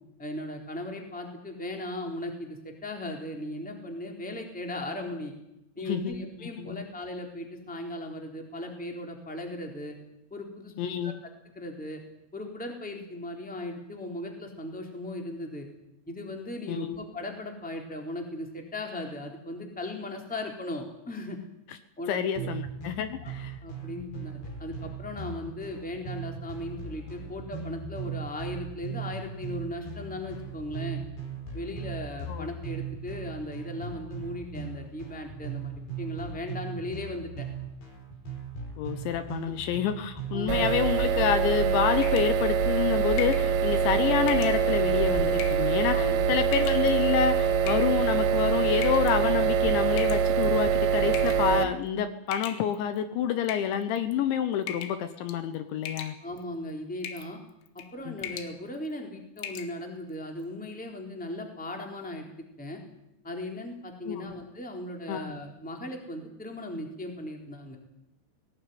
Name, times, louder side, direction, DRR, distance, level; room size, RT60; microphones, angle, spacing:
voice 1, 0.2-5.3 5.7-9.9 10.3-11.1 11.5-12.0 12.3-15.7 16.1-21.4 22.0-22.5 23.2-23.3 23.6-31.0 31.5-37.5 39.4-39.5 40.3-40.5 45.9-46.3 56.2-57.4 57.7-62.3 62.6-62.8 63.2-67.8, left 1 dB, ahead, 2 dB, 2.7 m, -37 dB
voice 2, 5.9-6.2 6.4-6.9 10.8-11.2 16.7-17.0 22.1-23.6 24.0-24.3 32.3-32.5 38.8-56.2 58.1-58.2 64.1-64.3 65.1-65.3, left 9 dB, 75° left, 10 dB, 3.2 m, -28 dB
sound 1, 22.4-41.2, right 6 dB, 55° left, 6.7 m, -39 dB
sound 2, 40.5-51.7, right 7 dB, 80° right, 4.0 m, -24 dB
sound 3, 42.0-42.4 43.2-43.5 44.3-44.6 45.4-45.7 46.5-46.9 47.7-48.1 48.8-49.2 50.0-50.6 51.1-51.5 52.3-53.0 53.5-54.1 54.7-55.0 55.3-55.6 55.9-56.4 57.0-57.3 57.7-57.9 58.2-58.5 58.9-59.0 59.4-59.7, left 8 dB, 90° left, 4.3 m, -39 dB
19.5 x 18.0 x 9.4 m, 0.85 s
omnidirectional pair, 5.7 m